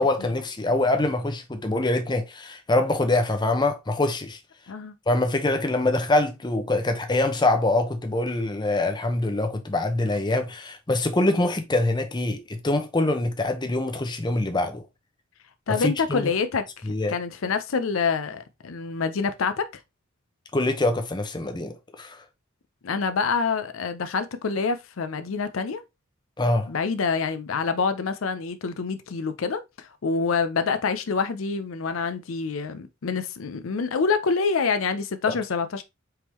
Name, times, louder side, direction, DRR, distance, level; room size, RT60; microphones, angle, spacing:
voice 1, 0.0-4.4 5.1-14.8 15.7-16.3 16.8-17.1 20.5-22.2 26.4-26.7 35.3-35.4, left 2 dB, 20° left, 0.7 m, -24 dB
voice 2, 15.7-16.6 17.1-19.7 22.8-25.8 26.7-35.8, left 5 dB, 75° left, 0.5 m, -26 dB
4.5 x 3.6 x 3.0 m
head